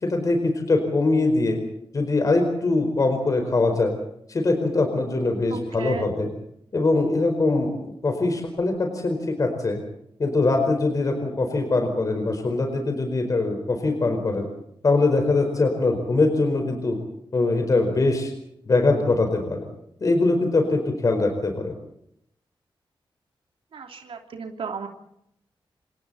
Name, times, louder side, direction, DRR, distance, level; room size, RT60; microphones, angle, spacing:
voice 1, 0.0-1.6 1.9-3.9 4.3-6.3 6.7-9.8 10.2-14.5 14.8-17.0 17.3-18.3 18.7-19.6 20.0-21.7, left 3 dB, 40° left, 4 dB, 4.8 m, -22 dB
voice 2, 5.5-6.0 23.7-24.9, right 5 dB, 80° right, 3 dB, 3.1 m, -34 dB
29.0 x 27.0 x 4.3 m, 0.75 s
wide cardioid pair, 165°, 9 cm